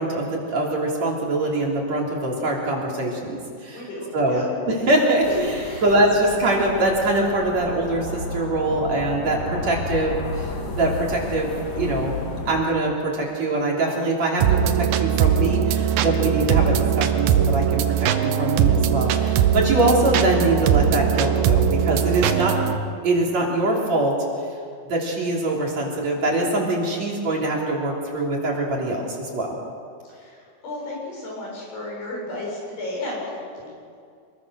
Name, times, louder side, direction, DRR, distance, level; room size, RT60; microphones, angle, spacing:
voice 1, 0.0-3.8 4.1-5.3 5.8-12.1 12.5-17.8 18.2-22.5 23.0-24.1 24.9-29.6, right 2 dB, 45° right, -2 dB, 4.2 m, -23 dB
voice 2, 3.7-4.5 5.3-5.9 22.3-22.5 30.1-33.9, left 2 dB, 80° left, -3 dB, 9.2 m, -33 dB
sound 1, 5.2-12.6, left 2 dB, 60° left, 3.8 m, -32 dB
sound 2, 14.4-22.8, right 8 dB, 80° right, 2.9 m, -20 dB
26.5 x 21.5 x 6.3 m, 2.4 s
omnidirectional pair, 4.6 m